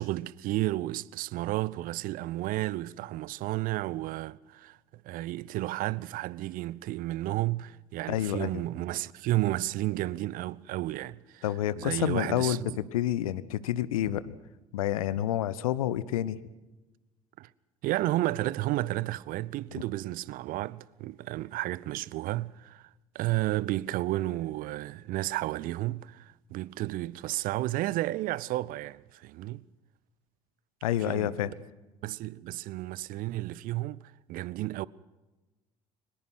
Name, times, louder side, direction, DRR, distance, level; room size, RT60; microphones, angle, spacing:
voice 1, 0.0-4.8 5.0-11.4 11.8-12.8 17.4-17.5 17.8-22.9 23.1-29.6 31.1-31.3 32.0-34.0 34.3-34.9, right 17 dB, 50° right, 0.6 m, -32 dB
voice 2, 8.1-8.6 11.4-12.6 12.9-14.4 14.7-16.4 19.7-19.8 30.8-31.5, left 12 dB, 70° left, 0.9 m, -29 dB
23.5 x 20.5 x 6.2 m
figure-of-eight pair, 60°, 19 cm